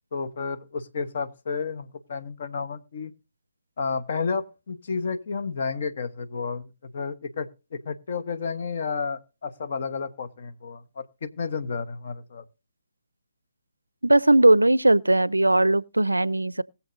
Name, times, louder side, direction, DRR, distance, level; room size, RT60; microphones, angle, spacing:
voice 1, 0.1-3.1 3.8-12.4, left 5 dB, 55° left, 1.1 m, -31 dB
voice 2, 14.0-16.6, right 2 dB, 90° right, 0.4 m, -19 dB
21.0 x 7.2 x 2.6 m
figure-of-eight pair, 135°, 0 cm